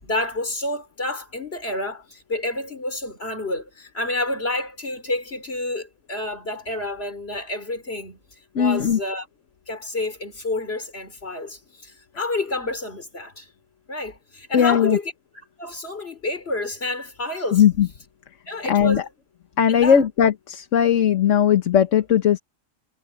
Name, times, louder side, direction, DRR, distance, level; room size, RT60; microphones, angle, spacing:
voice 1, 0.0-9.3 9.7-13.5 13.9-15.1 15.6-17.6 18.5-19.1 19.7-20.0, left 2 dB, 50° left, 4.1 m, -29 dB
voice 2, 8.5-9.0 14.5-15.0 17.5-17.9 18.7-19.0 19.6-22.4, left 8 dB, 65° left, 1.5 m, -18 dB
omnidirectional pair, 1.4 m